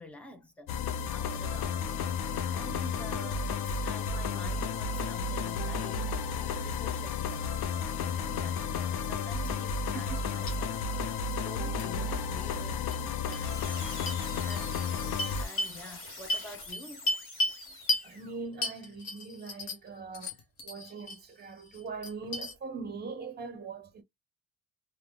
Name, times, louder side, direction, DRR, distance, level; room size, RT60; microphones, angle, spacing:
voice 1, 0.0-2.0 2.5-17.1, left 1 dB, 5° left, 0.5 m, -48 dB
sound 1, 0.7-15.5, left 5 dB, 80° left, 0.6 m, -32 dB
sound 2, 9.9-10.2 10.5-10.6 11.8-11.9 12.9-13.0 13.3-13.4 14.1-14.2 14.5-14.6 15.2-15.8 16.3-17.6 17.9-18.1 18.6-19.9 20.1-21.2 21.6-22.5, left 1 dB, 65° left, 1.0 m, -33 dB
sound 3, 13.2-18.4, left 2 dB, 35° left, 1.3 m, -45 dB
voice 2, 18.0-20.3 20.6-24.0, right 4 dB, 25° right, 0.8 m, -41 dB
3.4 x 2.2 x 2.2 m
cardioid pair, 155°, 38 cm